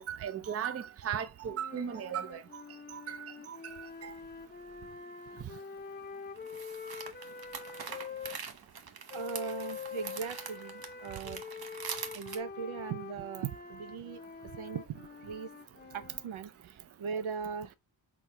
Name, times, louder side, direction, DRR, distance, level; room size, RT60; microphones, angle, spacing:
voice 1, 0.0-2.6 2.9-3.6 4.0-4.1, right 8 dB, 35° right, 0.4 m, -37 dB
sound 1, 1.4-8.4 9.1-16.3, left 6 dB, 20° left, 0.6 m, -45 dB
sound 2, 3.7-3.8 6.3-12.4, right 6 dB, 50° right, 0.9 m, -44 dB
voice 2, 9.1-11.4 12.1-14.2 14.6-15.5 15.9-17.7, right 6 dB, 80° right, 0.7 m, -39 dB
4.6 x 4.1 x 2.8 m
wide cardioid pair, 140°, 47 cm